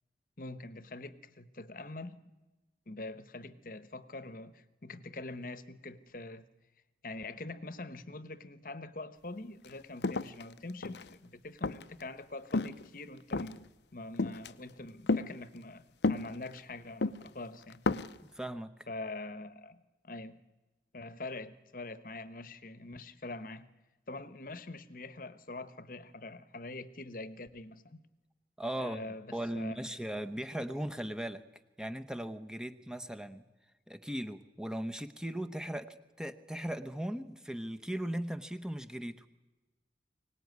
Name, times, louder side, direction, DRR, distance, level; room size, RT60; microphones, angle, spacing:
voice 1, 0.4-2.2 2.9-6.5 7.0-13.6 13.9-17.8 18.9-20.4 20.9-23.7 24.1-28.0 28.8-29.8, left 2 dB, 50° left, 1.1 m, -44 dB
sound 1, 9.6-9.7 10.0-11.1 11.6-12.0 12.5-12.9 13.3-13.6 14.2-14.5 15.1-15.3 16.0-16.6 17.0-17.3 17.7-18.2, left 3 dB, 80° left, 0.7 m, -31 dB
voice 2, 18.3-18.7 28.6-29.0 29.3-31.4 31.8-33.4 33.9-39.3, right 1 dB, 5° right, 0.9 m, -38 dB
24.0 x 18.5 x 9.5 m
head